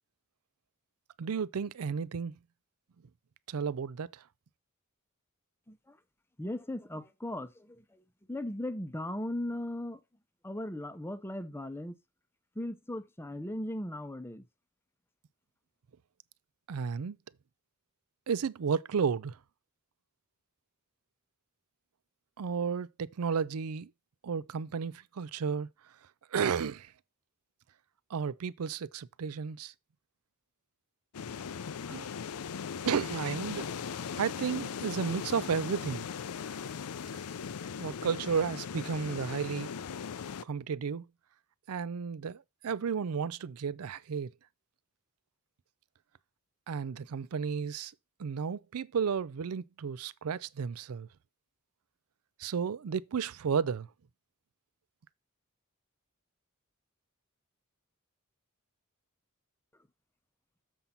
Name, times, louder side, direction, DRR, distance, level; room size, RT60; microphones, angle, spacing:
voice 1, 1.2-2.4 3.5-4.2 16.7-17.2 18.3-19.4 22.4-23.9 24.2-25.7 26.3-26.9 28.1-29.7 31.9-32.1 32.8-33.7 34.1-36.1 37.8-39.7 40.4-41.1 41.7-44.3 46.7-47.9 48.2-51.1 52.4-53.9, right 6 dB, 70° right, 0.4 m, -33 dB
voice 2, 5.7-6.0 6.4-8.0 8.3-10.0 10.4-12.0 12.5-14.5, left 1 dB, 10° left, 0.7 m, -38 dB
sound 1, 31.1-40.4, left 6 dB, 80° left, 0.5 m, -39 dB
7.4 x 5.4 x 5.6 m
head